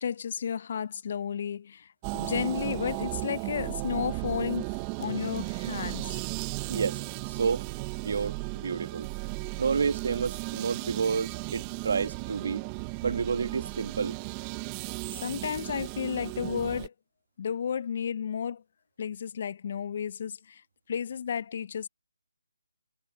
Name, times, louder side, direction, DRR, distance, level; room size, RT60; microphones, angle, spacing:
voice 1, 0.0-4.7 5.0-6.2 15.1-16.9 17.4-18.6 19.0-20.6 20.9-21.9, left 7 dB, 45° left, 0.7 m, -32 dB
sound 1, 2.0-16.9, right 27 dB, 20° right, 0.9 m, -35 dB
voice 2, 6.7-7.0 7.3-7.7 8.0-9.1 9.6-12.6 13.0-14.2, right 5 dB, 55° right, 1.5 m, -30 dB
figure-of-eight pair, 160°, 0 cm